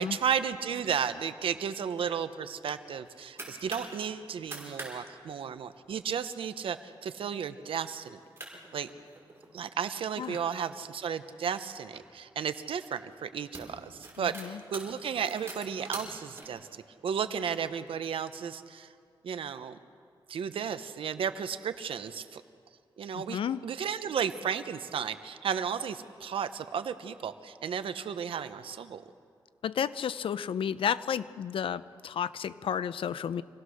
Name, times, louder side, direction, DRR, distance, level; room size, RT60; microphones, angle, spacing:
voice 1, 0.0-8.2 8.7-8.9 9.5-18.9 19.2-19.8 20.3-22.4 23.0-29.0, right 7 dB, 90° right, 11 dB, 0.9 m, -34 dB
sound 1, 2.8-4.0 4.4-4.9 5.2-5.3 5.6-6.0 6.5-6.8 7.2-7.3 8.1-8.2 8.4-9.5 10.1-12.0 12.8-13.0 13.3-16.4, right 2 dB, 25° right, 5.7 m, -45 dB
voice 2, 14.2-14.6 23.1-23.6 29.6-33.4, left 8 dB, 80° left, 15 dB, 0.6 m, -32 dB
26.5 x 18.0 x 6.5 m, 2.3 s
wide cardioid pair, 100°, 9 cm